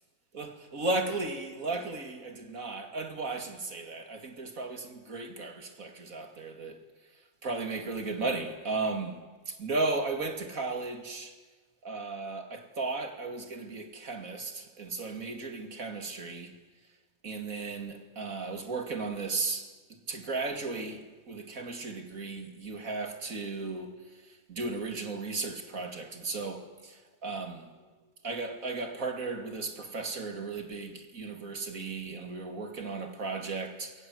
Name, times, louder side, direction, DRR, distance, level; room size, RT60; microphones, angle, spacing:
voice 1, 0.3-6.8 7.4-9.2 9.5-11.3 11.8-16.5 17.2-19.7 20.1-21.0 21.3-23.9 24.5-26.9 27.2-27.6 28.2-33.9, right 3 dB, 60° right, 2.9 m, -35 dB
28.0 x 22.5 x 7.9 m
omnidirectional pair, 1.6 m